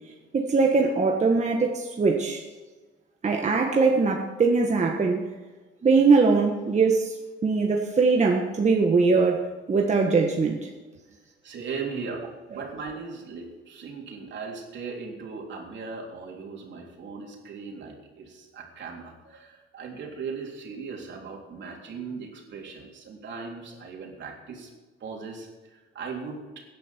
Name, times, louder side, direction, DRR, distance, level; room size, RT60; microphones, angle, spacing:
voice 1, 0.3-2.4 3.2-5.3 5.8-7.2 7.4-9.4 9.7-10.7, right 4 dB, 35° right, 1 dB, 1.5 m, -21 dB
voice 2, 11.4-24.7 25.0-26.6, right 5 dB, 65° right, 0 dB, 3.6 m, -38 dB
16.5 x 10.5 x 4.5 m, 1.3 s
cardioid pair, 90°, 20 cm